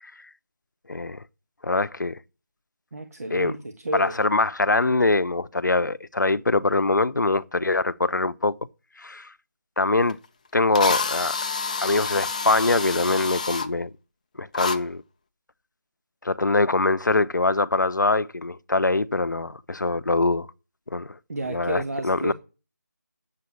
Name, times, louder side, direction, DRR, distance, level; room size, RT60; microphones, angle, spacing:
voice 1, 0.9-1.2 1.6-2.2 3.3-3.5 3.9-8.5 9.0-9.3 9.8-10.2 10.5-11.4 11.8-13.9 14.4-15.0 16.2-20.5 20.9-21.2 21.5-22.3, left 3 dB, 75° left, 0.8 m, -23 dB
voice 2, 2.9-4.2 21.3-22.3, right 2 dB, 55° right, 1.6 m, -31 dB
Drill, 10.1-10.2 10.7-13.7 14.5-14.8, left 4 dB, 25° left, 0.6 m, -28 dB
9.5 x 7.6 x 8.4 m
figure-of-eight pair, 165°, 10 cm